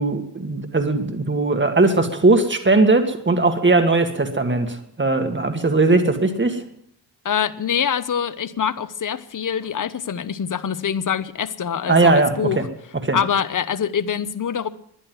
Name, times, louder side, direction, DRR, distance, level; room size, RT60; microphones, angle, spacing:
voice 1, 0.0-6.6 11.9-12.6 13.0-13.2, right 3 dB, 25° right, 1.9 m, -19 dB
voice 2, 7.2-12.6 13.1-14.7, left 8 dB, 45° left, 0.9 m, -24 dB
11.0 x 11.0 x 9.5 m
cardioid pair, 70°, 43 cm